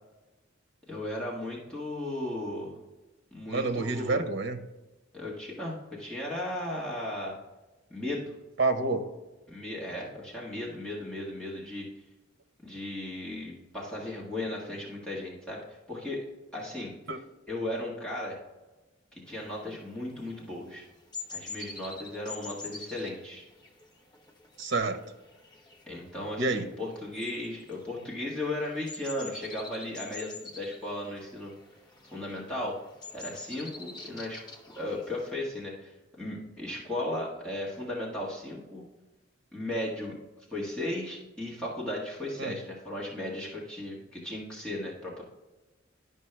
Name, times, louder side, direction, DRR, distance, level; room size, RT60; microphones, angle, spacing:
voice 1, 0.9-2.8 3.3-4.2 5.1-7.3 7.9-8.3 9.5-11.9 12.6-16.2 16.5-16.9 17.5-18.4 19.1-20.8 21.3-23.4 25.9-31.5 32.1-32.8 33.1-34.4 34.7-38.8 39.5-40.2 40.5-45.2, left 1 dB, 5° left, -6 dB, 1.6 m, -36 dB
voice 2, 3.5-4.6 8.6-9.1 17.1-17.2 24.6-25.0 26.4-26.7 42.4-42.5, right 3 dB, 65° right, 7 dB, 0.9 m, -28 dB
sound 1, 19.2-35.3, left 3 dB, 20° left, 0.8 m, -47 dB
11.5 x 5.4 x 3.3 m, 1.1 s
head